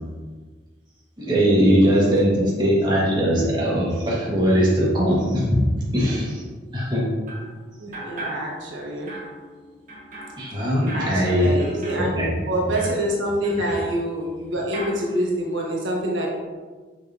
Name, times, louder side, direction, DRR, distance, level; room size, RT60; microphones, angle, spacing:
voice 1, 1.2-5.6 5.9-6.4 6.7-7.1 10.4-11.6 12.0-12.3 12.5-12.7 13.6-13.7, equal, 25° right, -7 dB, 1.9 m, -20 dB
sound 1, 7.3-7.6 7.9-8.8 9.1-14.4 14.7-15.1, right 1 dB, 45° right, 1.5 m, -39 dB
voice 2, 7.8-9.1 10.9-12.1 12.5-16.3, right 1 dB, 85° right, -2 dB, 1.3 m, -26 dB
6.6 x 5.9 x 3.0 m, 1.4 s
head